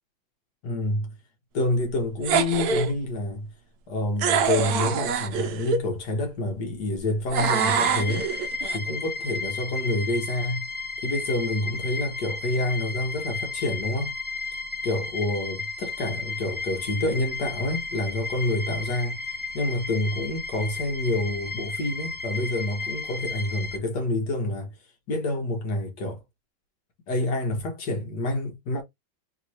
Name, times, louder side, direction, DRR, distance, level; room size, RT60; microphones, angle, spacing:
voice 1, 0.6-1.1 1.5-3.5 3.9-8.3 8.7-10.7 11.0-14.2 14.8-19.2 19.5-24.7 25.1-26.2 27.1-28.8, left 2 dB, 65° left, 1.6 m, -28 dB
sound 1, 2.2-2.9 4.2-5.8 7.3-8.8, right 6 dB, 65° right, 1.0 m, -25 dB
sound 2, 7.3-23.8, left 4 dB, 40° left, 0.4 m, -34 dB
3.6 x 3.0 x 4.0 m
omnidirectional pair, 2.0 m